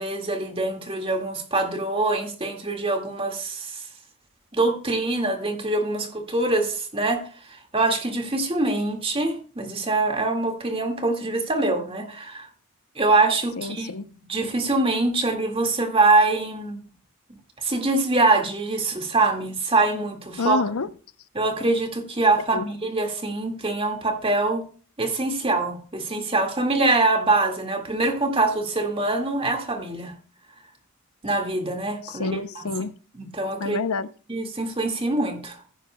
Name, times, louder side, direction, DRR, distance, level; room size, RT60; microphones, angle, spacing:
voice 1, 0.0-3.8 4.5-7.2 7.5-12.5 13.0-13.9 14.3-16.8 17.6-20.6 21.4-24.6 25.0-30.1 31.2-32.4 33.2-33.8 34.3-35.6, right 2 dB, 25° right, 1.9 m, -24 dB
voice 2, 13.6-14.1 20.4-20.9 22.5-22.7 32.0-32.9 33.6-34.1, left 4 dB, 85° left, 0.7 m, -28 dB
15.5 x 10.0 x 2.2 m
head